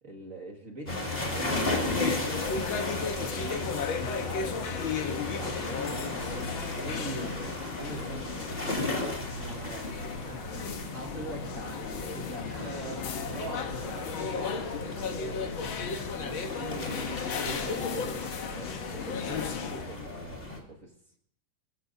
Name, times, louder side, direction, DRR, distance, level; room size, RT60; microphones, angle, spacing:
voice 1, 0.0-2.5 2.8-7.4 7.8-8.8 10.2-12.5 14.3-15.7 17.4-20.9, right 1 dB, 30° right, 1 dB, 1.6 m, -43 dB
sound 1, 0.9-20.6, left 2 dB, 20° left, 2.2 m, -35 dB
sound 2, 1.6-20.0, left 6 dB, 65° left, 1.2 m, -35 dB
voice 2, 9.4-10.1 12.4-14.2 16.1-17.2, right 4 dB, 70° right, -1 dB, 4.3 m, -43 dB
29.5 x 14.5 x 2.7 m, 0.63 s
omnidirectional pair, 3.8 m